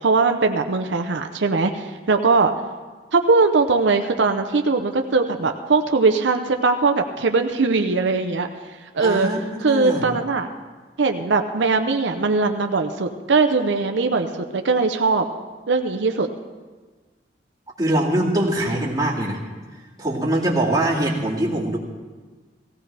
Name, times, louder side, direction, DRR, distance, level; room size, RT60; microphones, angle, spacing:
voice 1, 0.0-2.5 3.1-8.5 8.9-9.3 9.6-10.5 11.0-15.2 15.7-16.3, right 4 dB, 90° right, 6 dB, 0.7 m, -20 dB
voice 2, 9.0-10.1 17.8-19.4 20.0-21.8, right 1 dB, 20° right, -5 dB, 2.3 m, -22 dB
17.5 x 16.0 x 3.4 m, 1.4 s
head